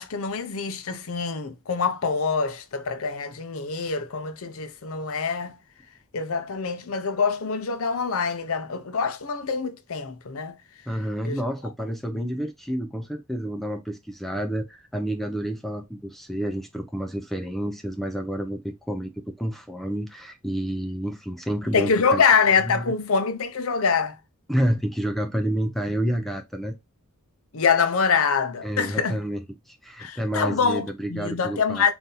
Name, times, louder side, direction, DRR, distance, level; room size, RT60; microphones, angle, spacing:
voice 1, 0.0-5.6 6.1-10.6 11.2-11.4 21.7-24.2 27.5-29.2 30.0-31.9, left 5 dB, 65° left, 0.6 m, -25 dB
voice 2, 10.9-22.2 22.6-22.9 24.5-26.8 28.6-31.9, equal, ahead, 0.3 m, -29 dB
4.0 x 2.6 x 3.9 m
head